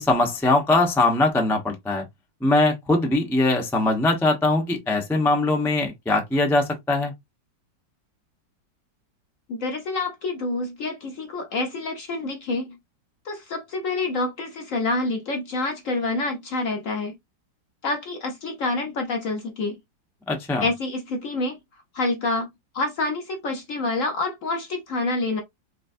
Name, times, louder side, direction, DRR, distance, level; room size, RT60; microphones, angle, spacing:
voice 1, 0.0-2.0 2.4-7.1 20.3-20.7, left 2 dB, 5° left, 0.3 m, -21 dB
voice 2, 9.5-12.8 13.2-17.1 17.8-19.8 20.6-21.6 21.9-22.5 22.7-25.4, left 2 dB, 60° left, 0.9 m, -27 dB
4.1 x 3.3 x 2.6 m
omnidirectional pair, 2.0 m